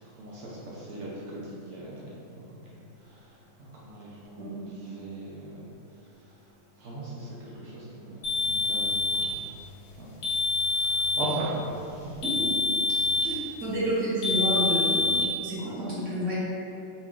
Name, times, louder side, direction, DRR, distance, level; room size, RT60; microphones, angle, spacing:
voice 1, 0.2-1.4 1.6-2.1 3.7-5.6 6.8-8.2 8.6-9.3 10.0-10.1 10.7-11.5 11.8-12.1, right 1 dB, 90° right, -6 dB, 0.6 m, -38 dB
sound 1, 8.2-9.4 10.2-11.4 12.2-13.4 14.2-15.3, left 3 dB, 65° left, 1.1 m, -26 dB
voice 2, 13.2-16.4, right 1 dB, 50° right, -9 dB, 1.3 m, -30 dB
4.4 x 2.3 x 3.6 m, 2.7 s
omnidirectional pair, 2.0 m